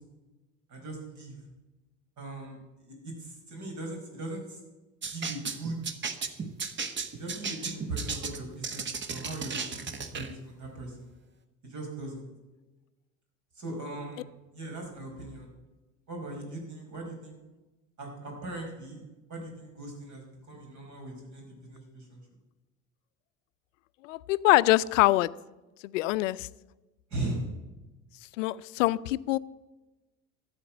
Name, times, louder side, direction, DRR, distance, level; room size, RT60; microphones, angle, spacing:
voice 1, 0.7-1.4 2.2-2.6 2.8-4.6 5.1-5.8 7.2-11.1 11.6-12.3 13.6-14.3 14.5-15.5 16.1-17.4 18.0-19.0 19.3-22.2 27.1-27.4, right 2 dB, 45° right, 2 dB, 5.2 m, -39 dB
sound 1, 5.0-10.3, right 5 dB, 30° right, 1.2 m, -35 dB
voice 2, 24.0-25.3 25.8-26.5 28.4-29.4, left 18 dB, 70° left, 18 dB, 0.6 m, -24 dB
13.0 x 8.2 x 7.5 m, 1.1 s
hypercardioid pair, 70°, 40 cm